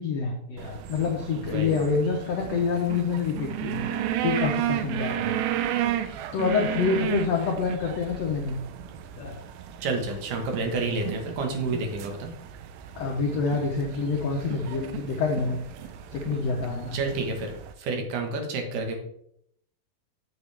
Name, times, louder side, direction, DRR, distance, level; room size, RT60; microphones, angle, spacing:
voice 1, 0.0-3.8 4.2-5.4 6.3-8.6 9.2-9.4 13.0-15.6 16.1-17.1, left 5 dB, 80° left, 1 dB, 1.5 m, -27 dB
sound 1, 0.6-17.7, right 11 dB, 90° right, 2.6 m, -33 dB
voice 2, 1.3-1.9 9.8-12.3 16.9-17.5 17.8-19.0, right 3 dB, 70° right, 3 dB, 2.8 m, -29 dB
8.5 x 7.1 x 3.4 m, 0.71 s
omnidirectional pair, 4.2 m